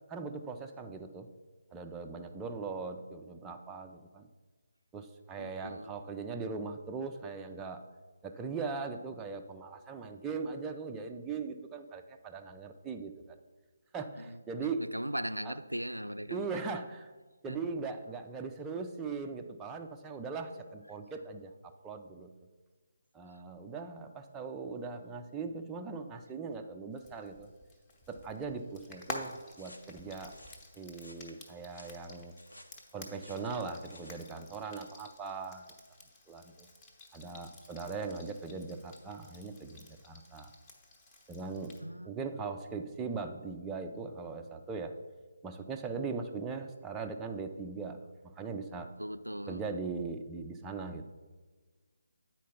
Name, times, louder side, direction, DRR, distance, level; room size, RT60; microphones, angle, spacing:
voice 1, 0.1-1.3 1.7-4.3 4.9-7.8 8.2-13.4 13.9-14.9 15.4-15.5 16.3-17.1 17.4-22.3 23.1-27.5 28.1-30.3 30.8-32.3 32.9-35.6 36.3-36.7 37.1-40.5 41.3-41.8 42.1-44.9 45.4-48.0 48.2-48.9 49.5-51.0, right 4 dB, 10° right, 3 dB, 0.4 m, -40 dB
voice 2, 5.4-6.0 14.2-16.5 17.5-17.6 20.5-20.7 41.8-42.1 49.0-49.7, equal, 85° right, 11 dB, 0.4 m, -39 dB
Frying (food), 27.0-41.8, left 2 dB, 15° left, 0.9 m, -50 dB
sound 1, 29.6-34.3, left 1 dB, 75° left, 1.0 m, -56 dB
9.2 x 4.5 x 5.7 m, 1.4 s
figure-of-eight pair, 150°, 0 cm